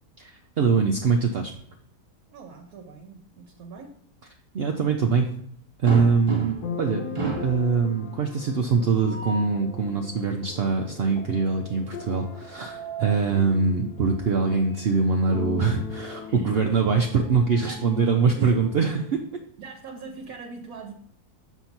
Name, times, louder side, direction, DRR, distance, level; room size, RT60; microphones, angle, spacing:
voice 1, 0.2-1.5 4.5-5.3 5.8-7.0 7.4-19.4, right 5 dB, 80° right, 2 dB, 0.5 m, -23 dB
voice 2, 2.3-4.0 5.9-6.2 16.2-16.9 17.6-17.8 18.3-18.6 19.6-20.9, right 4 dB, 65° right, 4 dB, 1.1 m, -41 dB
sound 1, 5.8-6.8 7.1-7.6 8.9-9.6 12.3-13.3 14.7-14.9 15.3-15.4 16.9-18.2, right 4 dB, 30° right, 0.6 m, -34 dB
sound 2, 6.5-19.1, left 5 dB, 75° left, 1.3 m, -40 dB
7.0 x 2.7 x 5.8 m, 0.71 s
omnidirectional pair, 1.8 m